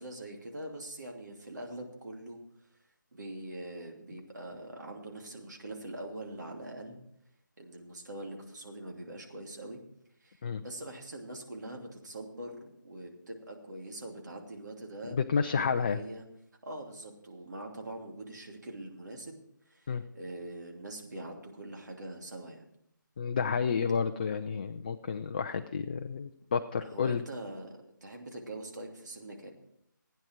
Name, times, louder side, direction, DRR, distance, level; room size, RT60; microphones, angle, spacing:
voice 1, 0.0-2.4 3.1-7.0 7.6-9.8 10.2-15.3 15.6-16.2 16.6-19.9 20.1-22.6 26.8-29.5, right 1 dB, 60° right, 1 dB, 2.8 m, -43 dB
voice 2, 15.1-16.0 19.9-20.0 23.2-27.2, left 6 dB, 25° left, 8 dB, 0.4 m, -30 dB
16.0 x 9.5 x 4.6 m, 0.74 s
figure-of-eight pair, 160°, 11 cm